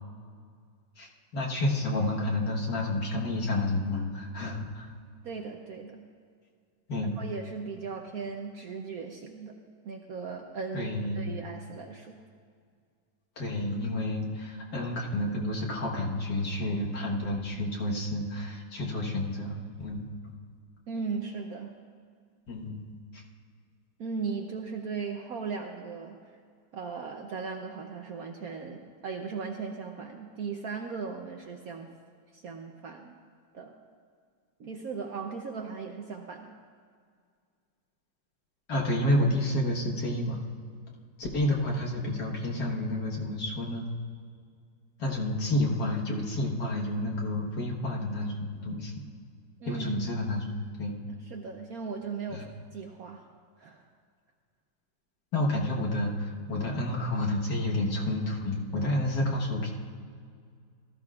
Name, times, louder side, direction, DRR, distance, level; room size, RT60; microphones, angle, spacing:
voice 1, 1.0-4.9 6.9-7.2 10.7-11.3 13.4-20.1 22.5-23.2 38.7-40.4 41.2-43.9 45.0-48.3 48.6-49.0 49.7-50.9 52.3-52.4 55.3-59.7, left 1 dB, 55° left, -2 dB, 1.9 m, -30 dB
voice 2, 5.2-6.1 7.2-10.9 11.1-12.2 20.9-21.7 24.0-26.2 26.7-31.9 32.3-33.2 33.5-33.7 34.6-36.6 49.6-50.1 51.1-53.3 53.6-53.9, right 5 dB, 65° right, 3 dB, 1.0 m, -37 dB
18.0 x 13.5 x 2.4 m, 2.1 s
omnidirectional pair, 2.1 m